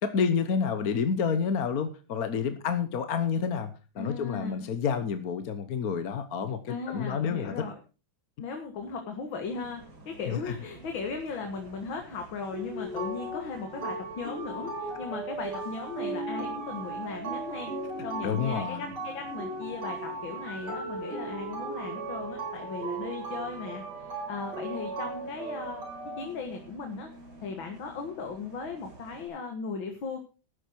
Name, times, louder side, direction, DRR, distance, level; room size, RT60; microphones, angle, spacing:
voice 1, 0.0-7.5 10.3-10.4 18.2-18.9, left 6 dB, 55° left, 9 dB, 1.4 m, -29 dB
voice 2, 4.0-4.7 6.7-7.8 8.4-17.7 18.0-25.8 26.2-27.1 27.4-30.2, left 4 dB, 80° left, 4 dB, 2.4 m, -37 dB
Bus, 9.5-29.3, right 2 dB, 90° right, 5.0 m, -52 dB
sound 1, 12.5-26.2, right 2 dB, 60° right, 4.6 m, -36 dB
13.0 x 9.6 x 4.5 m, 0.34 s
omnidirectional pair, 2.1 m